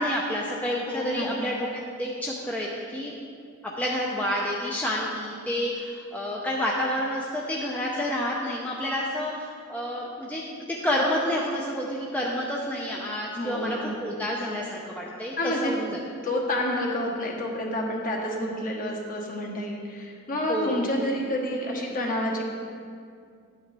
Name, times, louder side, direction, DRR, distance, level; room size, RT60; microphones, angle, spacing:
voice 1, 0.0-3.1 3.8-10.4 10.7-16.0 20.5-20.9, equal, 5° left, -4 dB, 0.6 m, -29 dB
voice 2, 0.9-1.3 13.4-14.0 15.4-15.7 16.2-22.5, left 1 dB, 40° left, -1 dB, 1.3 m, -29 dB
11.0 x 8.7 x 3.4 m, 2.3 s
head